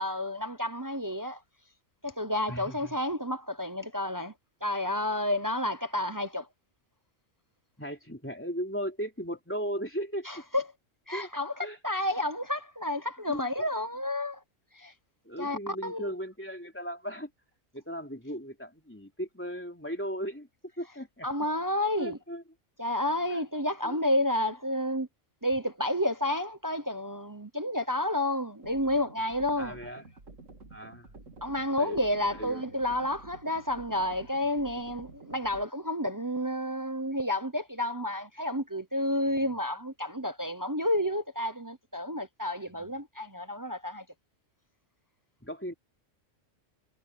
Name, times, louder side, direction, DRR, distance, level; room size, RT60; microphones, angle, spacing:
voice 1, 0.0-1.4 2.0-4.3 4.6-6.5 10.3-10.6 11.1-14.4 14.7-14.9 15.4-16.1 21.2-22.2 22.8-25.1 25.4-29.8 31.4-44.0, left 1 dB, 20° right, 0.8 m, -30 dB
voice 2, 2.5-3.0 7.8-10.3 11.1-11.3 11.6-11.8 13.3-13.5 15.2-17.3 17.7-20.5 20.8-21.3 22.0-22.4 23.3-23.4 23.8-24.0 29.6-30.1 30.7-31.2 31.8-32.0 32.3-32.6 42.7-43.0 45.4-45.7, equal, 10° left, 3.4 m, -37 dB
sound 1, 28.6-35.6, right 3 dB, 85° right, 3.2 m, -50 dB
omnidirectional pair, 1.3 m